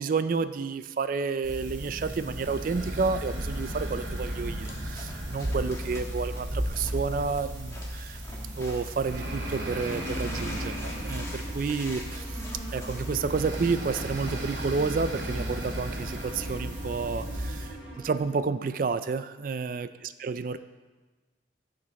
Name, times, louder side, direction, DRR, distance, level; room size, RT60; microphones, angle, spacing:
voice 1, 0.0-8.2 8.6-12.2 12.7-17.7 18.0-19.9 20.2-20.6, right 4 dB, 45° right, 13 dB, 0.3 m, -30 dB
sound 1, 1.4-17.7, equal, 75° right, 2.2 m, -34 dB
sound 2, 4.6-9.1 9.5-14.5, left 1 dB, 15° left, 1.3 m, -46 dB
sound 3, 10.0-18.2, right 1 dB, 5° right, 2.7 m, -43 dB
15.5 x 5.2 x 4.1 m, 1.2 s
head